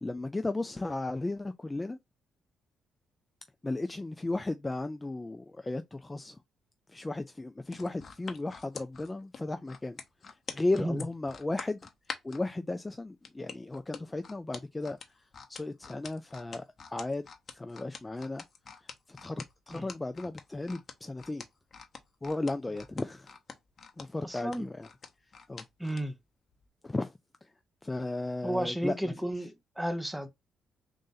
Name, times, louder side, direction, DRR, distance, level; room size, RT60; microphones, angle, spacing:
voice 1, 0.0-2.0 3.6-6.4 6.9-10.0 10.3-11.8 12.2-15.0 15.5-18.4 18.8-21.5 22.2-23.3 24.0-24.9 25.5-25.6 26.8-27.1 27.4-27.5 27.8-29.3, left 2 dB, 15° left, 0.3 m, -35 dB
sound 1, 7.7-12.4 13.2-26.0 26.5-26.6, left 5 dB, 45° left, 0.9 m, -45 dB
voice 2, 24.2-24.7 25.8-26.2 28.4-30.3, right 1 dB, 5° right, 0.8 m, -33 dB
3.8 x 2.5 x 3.9 m
cardioid pair, 90°, 0 cm